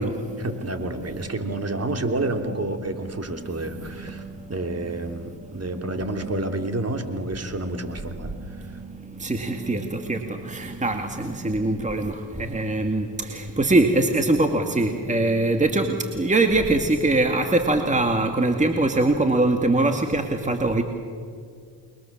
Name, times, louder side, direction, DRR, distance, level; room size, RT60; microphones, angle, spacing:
voice 1, 0.4-4.2 4.5-8.3, right 2 dB, 30° right, 6 dB, 3.2 m, -29 dB
voice 2, 3.1-4.3 4.8-5.3 5.8-6.0 8.2-20.8, right 2 dB, 15° right, 5 dB, 2.2 m, -23 dB
28.5 x 22.5 x 7.4 m, 2.2 s
supercardioid pair, 70°, 48 cm